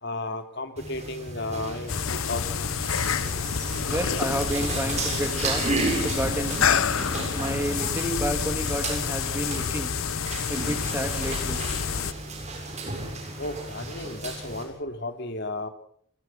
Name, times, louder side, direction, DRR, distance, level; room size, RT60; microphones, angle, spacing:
voice 1, 0.0-2.9 13.4-15.7, left 2 dB, 55° left, 7 dB, 3.1 m, -34 dB
sound 1, 0.8-14.6, right 2 dB, 35° right, 7.5 m, -33 dB
sound 2, 1.3-6.3, equal, 65° right, 5.4 m, -45 dB
sound 3, 1.9-12.1, left 7 dB, 85° left, 0.9 m, -28 dB
voice 2, 3.9-5.6 5.9-6.7 7.3-9.9 10.5-11.6, right 1 dB, 10° right, 6 dB, 2.8 m, -30 dB
29.5 x 22.0 x 5.8 m, 0.63 s
head